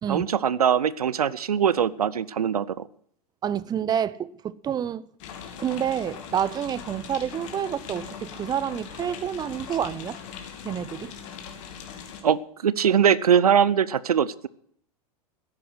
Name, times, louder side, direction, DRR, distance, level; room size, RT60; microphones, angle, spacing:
voice 1, 0.1-2.9 12.2-14.5, right 8 dB, 70° right, 0.7 m, -22 dB
voice 2, 3.4-5.1 5.6-10.2 10.6-11.1, right 9 dB, 20° right, 0.6 m, -28 dB
sound 1, 5.2-12.2, left 7 dB, 50° left, 2.8 m, -40 dB
14.5 x 10.5 x 6.2 m
figure-of-eight pair, 85°, 20 cm